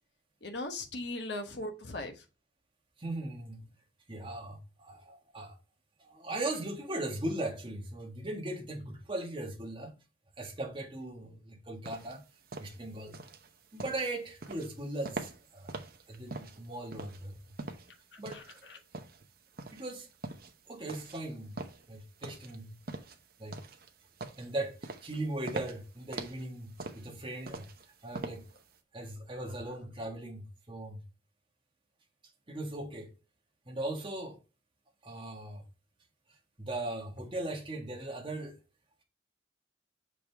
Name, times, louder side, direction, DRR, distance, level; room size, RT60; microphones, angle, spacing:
voice 1, 0.4-2.1 18.1-18.4, left 2 dB, 65° left, 1.2 m, -38 dB
voice 2, 3.0-3.7 4.1-5.6 6.0-9.9 10.4-12.2 12.6-13.2 13.7-15.8 16.1-17.4 18.2-18.4 19.7-20.1 20.7-21.6 21.9-22.7 23.4-23.6 24.4-27.7 28.0-28.5 28.9-31.0 32.5-33.1 33.7-34.4 35.0-35.6 36.6-38.6, right 1 dB, 25° right, 1.7 m, -38 dB
sound 1, 11.8-28.7, right 2 dB, 55° right, 0.9 m, -44 dB
6.5 x 5.1 x 3.5 m
head